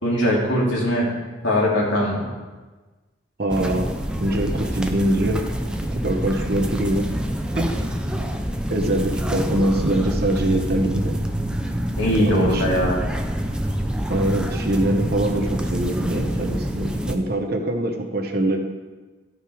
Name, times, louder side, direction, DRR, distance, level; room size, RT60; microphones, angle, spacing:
voice 1, 0.0-1.1 1.4-2.2 12.0-13.0, equal, 65° left, -4 dB, 2.9 m, -20 dB
voice 2, 3.4-3.9 4.2-5.4 5.9-7.1 7.5-7.7 8.7-11.1 12.2-12.6 14.1-18.6, right 1 dB, 50° right, 3 dB, 1.0 m, -23 dB
sound 1, 3.5-17.2, equal, 5° right, 0.5 m, -26 dB
12.5 x 6.3 x 4.9 m, 1.3 s
head